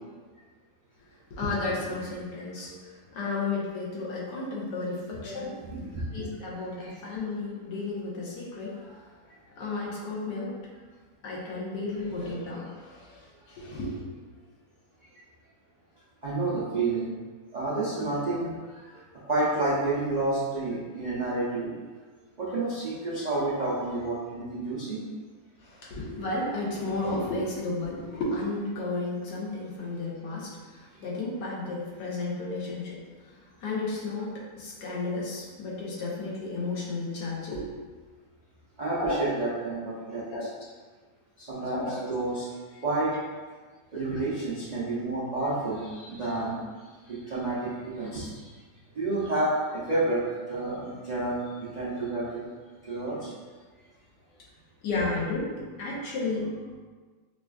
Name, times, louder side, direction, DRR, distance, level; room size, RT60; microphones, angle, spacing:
voice 1, 1.3-2.7 3.1-5.5 6.1-8.7 9.6-10.5 11.2-14.0 25.6-33.0 33.6-37.7 39.0-39.2 40.3-40.4 41.7-42.1 44.1-44.2 54.8-56.5, left 3 dB, 75° left, -5 dB, 1.4 m, -33 dB
voice 2, 5.6-6.2 6.8-6.9 8.8-9.0 16.2-17.1 17.5-21.7 22.4-25.0 38.8-40.3 41.4-42.5 42.8-43.2 43.9-46.7 47.1-48.5 48.9-52.5 52.8-53.3, right 2 dB, 90° right, -11 dB, 0.3 m, -30 dB
4.9 x 2.4 x 2.3 m, 1.4 s
omnidirectional pair, 1.9 m